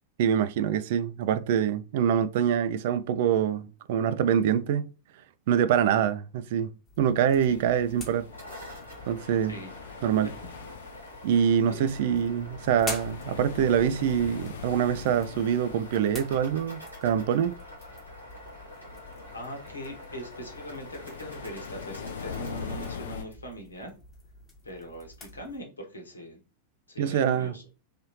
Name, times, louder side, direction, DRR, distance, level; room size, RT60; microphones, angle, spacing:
voice 1, 0.2-4.9 5.5-6.7 7.0-8.3 9.1-9.5 10.0-10.3 11.2-17.5 27.0-27.5, right 8 dB, 50° right, 0.3 m, -25 dB
sound 1, 6.9-25.6, left 2 dB, 15° left, 1.2 m, -47 dB
sound 2, 7.3-23.2, left 7 dB, 60° left, 0.5 m, -43 dB
sound 3, 8.3-23.0, equal, 90° right, 1.6 m, -46 dB
voice 2, 11.7-12.0 19.3-23.9 24.6-26.4 26.9-27.6, equal, 75° left, 1.0 m, -41 dB
3.3 x 2.7 x 3.0 m
figure-of-eight pair, 90°, 0 cm